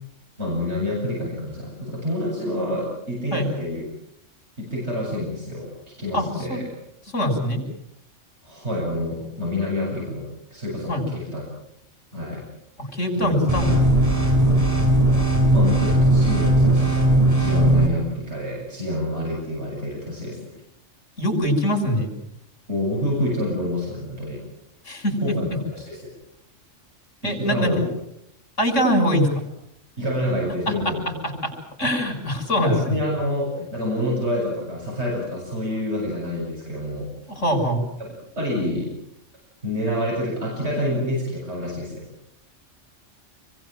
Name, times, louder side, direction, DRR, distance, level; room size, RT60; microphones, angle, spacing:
voice 1, 0.4-3.8 4.6-5.7 6.0-6.7 8.4-11.4 12.1-12.4 12.9-13.7 15.5-20.4 22.7-24.4 25.2-26.1 27.2-27.8 30.0-31.2 32.6-37.1 38.0-38.1 38.4-38.9 39.6-42.1, left 1 dB, 60° right, -3 dB, 8.5 m, -27 dB
voice 2, 6.1-6.6 7.1-7.6 10.9-11.0 12.8-13.7 21.2-22.1 24.8-25.2 27.2-27.7 28.6-29.3 30.7-30.8 31.2-31.5 31.8-33.0 37.3-37.8, equal, 75° left, 4 dB, 6.9 m, -23 dB
sound 1, 13.5-17.9, right 1 dB, 30° right, 7.6 m, -18 dB
28.5 x 23.0 x 7.6 m, 0.79 s
omnidirectional pair, 1.3 m